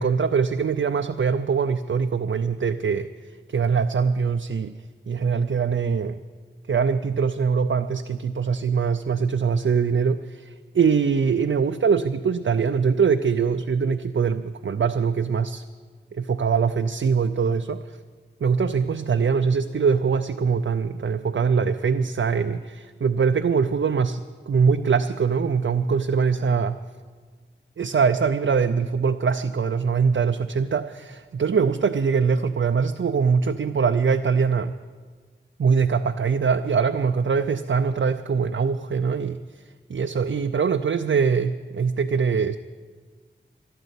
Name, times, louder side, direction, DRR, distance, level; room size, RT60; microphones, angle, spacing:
voice 1, 0.0-3.1 3.5-4.7 5.1-6.2 6.7-15.6 16.1-18.0 18.4-26.8 27.8-34.7 35.6-39.4 39.9-42.6, right 5 dB, 70° right, 7 dB, 0.5 m, -22 dB
12.5 x 12.0 x 8.2 m, 1.5 s
wide cardioid pair, 50°, 21 cm